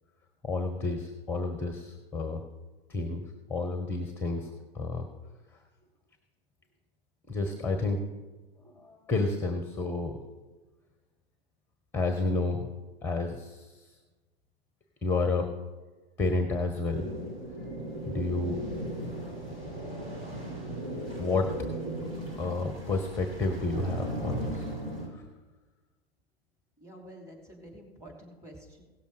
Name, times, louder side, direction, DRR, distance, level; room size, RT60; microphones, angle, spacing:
voice 1, 0.4-2.4 2.9-3.2 3.5-5.1 5.5-5.6 7.3-8.0 8.6-10.2 11.9-12.7 13.0-14.0 15.0-15.5 16.2-17.1 18.0-18.6 21.2-21.5 22.4-24.7 25.1-25.3, left 3 dB, 5° left, 6 dB, 0.8 m, -30 dB
sound 1, 16.9-25.1, right 1 dB, 70° right, 4.7 m, -37 dB
voice 2, 26.8-28.8, right 1 dB, 10° right, -1 dB, 3.1 m, -49 dB
17.0 x 6.9 x 4.9 m, 1.2 s
figure-of-eight pair, 105°, 31 cm